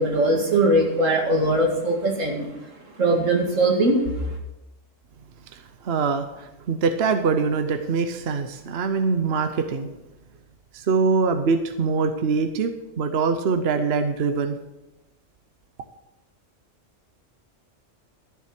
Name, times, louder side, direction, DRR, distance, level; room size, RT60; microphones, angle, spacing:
voice 1, 0.0-2.5 3.0-4.2, right 1 dB, 85° right, 1 dB, 2.5 m, -21 dB
voice 2, 5.5-9.9 10.7-14.6, right 5 dB, 55° right, 8 dB, 1.0 m, -23 dB
13.0 x 7.5 x 5.9 m, 0.96 s
omnidirectional pair, 1.3 m